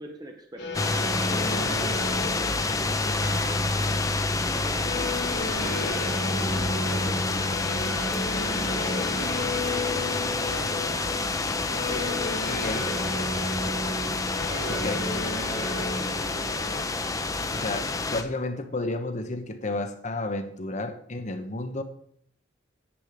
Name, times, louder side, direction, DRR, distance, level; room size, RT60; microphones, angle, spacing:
voice 1, 0.0-1.5 2.2-4.1 4.4-5.2 5.6-7.5 7.9-9.9 10.4-11.4 11.9-13.1 13.5-13.9 14.4-16.7, right 1 dB, 20° right, 1.2 m, -42 dB
sound 1, 0.6-18.7, left 1 dB, 65° left, 3.3 m, -34 dB
sound 2, 0.7-18.2, left 3 dB, 20° left, 0.8 m, -28 dB
voice 2, 1.5-1.9 12.5-12.9 14.7-15.1 17.5-21.8, left 2 dB, 40° left, 1.1 m, -32 dB
sound 3, 3.2-11.3 11.6-11.7, right 2 dB, 60° right, 4.1 m, -45 dB
10.0 x 9.1 x 5.0 m
head